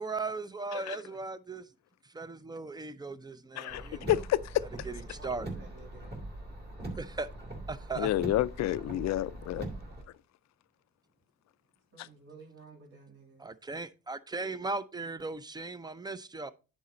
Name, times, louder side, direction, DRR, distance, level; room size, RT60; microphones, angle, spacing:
voice 1, 0.0-1.7 2.0-4.1 4.9-5.5 7.0-7.3 7.7-8.1 13.4-16.5, right 3 dB, 15° right, 0.6 m, -38 dB
voice 2, 3.6-4.6 8.0-9.7 10.1-10.2 12.0-12.1, left 14 dB, 65° left, 0.5 m, -30 dB
Car, 3.7-10.0, right 2 dB, 35° right, 2.8 m, -42 dB
voice 3, 5.1-6.1 11.9-13.4, right 3 dB, 50° right, 3.2 m, -52 dB
10.0 x 4.3 x 3.8 m
cardioid pair, 85°, 30 cm